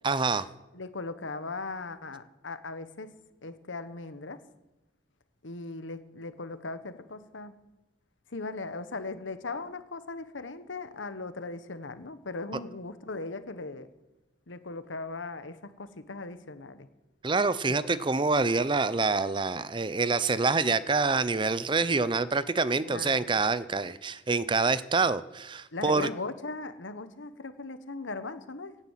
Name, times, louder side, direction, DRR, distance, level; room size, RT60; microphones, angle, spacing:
voice 1, 0.0-0.5 17.2-26.1, right 4 dB, 25° right, 16 dB, 0.5 m, -26 dB
voice 2, 0.7-3.1 3.4-4.4 5.4-7.5 8.3-13.9 14.5-16.9 22.8-23.3 25.7-28.8, left 3 dB, 85° left, 12 dB, 1.2 m, -38 dB
17.0 x 9.8 x 7.3 m, 1.0 s
head